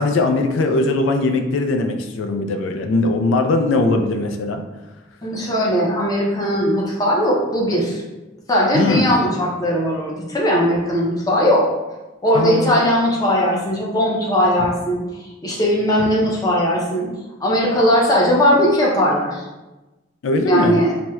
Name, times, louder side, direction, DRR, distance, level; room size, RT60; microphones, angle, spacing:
voice 1, 0.0-4.6 8.7-9.1 12.3-12.8 20.2-20.8, left 2 dB, 85° left, 5 dB, 0.3 m, -20 dB
voice 2, 5.2-8.0 8.5-11.7 12.2-15.0 15.4-17.1 17.4-19.4 20.5-20.9, equal, 20° left, -3 dB, 0.5 m, -18 dB
4.2 x 2.1 x 2.3 m, 1.1 s
head